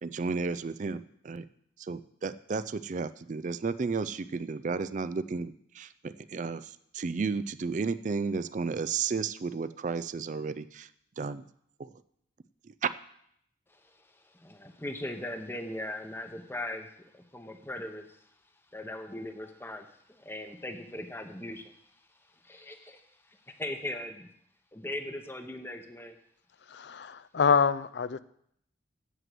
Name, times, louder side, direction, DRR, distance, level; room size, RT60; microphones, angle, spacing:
voice 1, 0.0-1.5 1.8-10.9 11.2-11.4 11.8-11.9 12.7-12.9, right 4 dB, 40° right, 13 dB, 0.4 m, -33 dB
voice 2, 13.7-18.2 18.7-21.6 22.4-24.3 24.7-26.1, left 1 dB, 10° left, 6 dB, 0.9 m, -39 dB
voice 3, 26.7-28.2, left 6 dB, 65° left, 15 dB, 0.5 m, -26 dB
8.1 x 7.6 x 7.6 m, 0.71 s
head